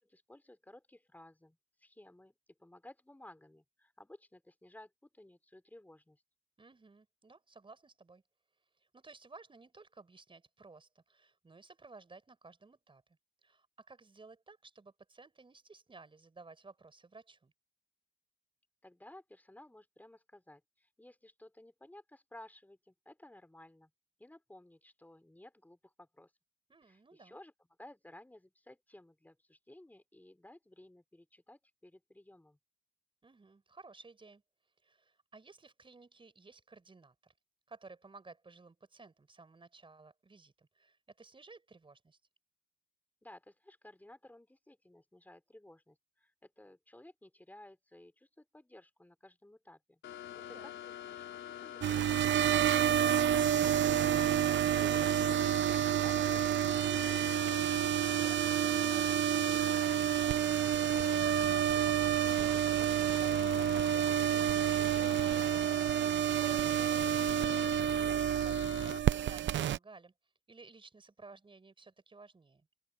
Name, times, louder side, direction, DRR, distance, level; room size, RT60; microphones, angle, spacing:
voice 1, 0.0-2.3 2.6-6.2 18.8-23.9 24.2-26.3 26.9-27.5 27.8-32.6 43.2-50.0 50.3-57.3, left 1 dB, 10° left, 5.2 m, -56 dB
voice 2, 6.6-8.2 8.8-17.5 26.7-27.4 33.2-34.4 34.8-37.3 37.7-42.2 50.4-50.8 57.8-61.7 62.1-65.9 66.8-70.1 70.5-72.7, right 3 dB, 25° right, 5.6 m, -56 dB
sound 1, 50.0-69.0, left 10 dB, 70° left, 4.8 m, -45 dB
sound 2, 51.8-69.8, right 10 dB, 70° right, 0.8 m, -29 dB
open air
cardioid pair, 90°, 20 cm